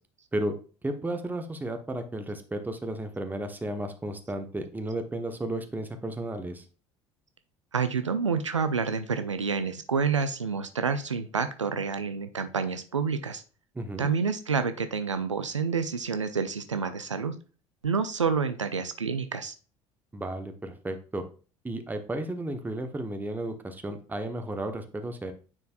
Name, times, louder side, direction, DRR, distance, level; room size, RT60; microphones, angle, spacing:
voice 1, 0.8-6.6 13.7-14.1 20.1-21.2 21.6-25.3, right 1 dB, 10° right, 5 dB, 1.1 m, -33 dB
voice 2, 7.7-13.4 14.0-17.3 17.8-19.5, right 5 dB, 85° right, 9 dB, 0.5 m, -28 dB
9.5 x 4.5 x 2.5 m, 0.37 s
figure-of-eight pair, 60°, 15 cm